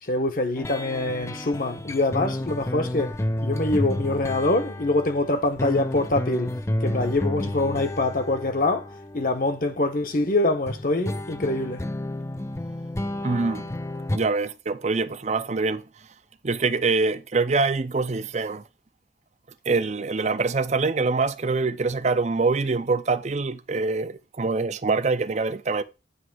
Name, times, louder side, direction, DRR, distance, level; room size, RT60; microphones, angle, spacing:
voice 1, 0.0-11.8, left 2 dB, 50° left, 1.1 m, -25 dB
sound 1, 0.6-10.0 10.7-14.2, left 1 dB, 15° left, 0.4 m, -31 dB
voice 2, 13.2-13.7 14.1-15.8 16.4-18.6 19.7-25.8, right 3 dB, 40° right, 0.6 m, -24 dB
9.5 x 3.3 x 6.1 m
head